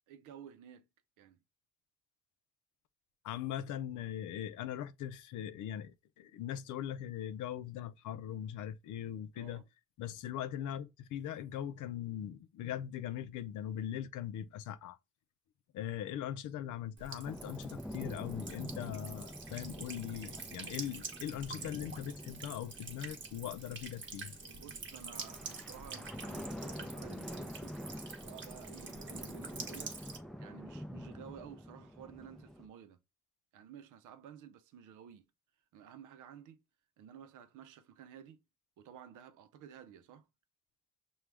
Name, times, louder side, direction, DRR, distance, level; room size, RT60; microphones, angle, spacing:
voice 1, 0.1-0.9 1.2-1.4 9.4-9.6 24.6-27.8 28.2-30.0 30.4-33.0 33.5-35.3 35.7-36.6 37.0-38.4 38.8-40.3, right 9 dB, 85° right, 0.7 m, -53 dB
voice 2, 3.2-9.6 10.0-15.0 15.7-24.4, left 10 dB, 80° left, 0.6 m, -40 dB
Buzz / Water tap faucet / Trickle dribble, 17.0-30.2, right 4 dB, 40° right, 1.0 m, -47 dB
sound 1, 17.2-32.7, equal, ahead, 0.5 m, -47 dB
6.0 x 2.3 x 3.3 m
cardioid pair, 90°, 30 cm